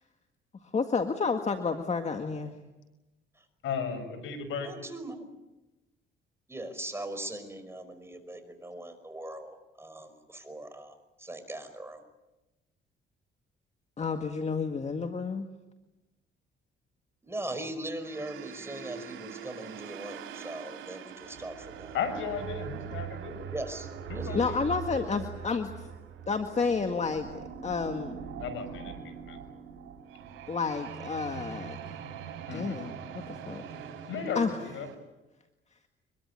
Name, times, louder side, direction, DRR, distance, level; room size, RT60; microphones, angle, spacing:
voice 1, 0.7-2.5 14.0-15.5 24.3-25.9 26.3-27.3 27.6-28.2 30.5-32.0 32.5-33.6 34.4-34.6, left 5 dB, 35° left, 6 dB, 1.9 m, -30 dB
voice 2, 3.6-4.7 21.9-23.5 24.1-24.6 28.4-29.4 32.5-32.8 34.1-34.9, left 6 dB, 80° left, 9 dB, 5.8 m, -35 dB
voice 3, 4.6-5.3 6.5-12.0 17.2-22.0 23.5-23.9 24.2-24.5, right 1 dB, 10° right, 8 dB, 5.4 m, -40 dB
sound 1, 18.0-34.9, right 8 dB, 90° right, 4.4 m, -42 dB
24.0 x 22.5 x 9.7 m, 1.0 s
cardioid pair, 90°, 20 cm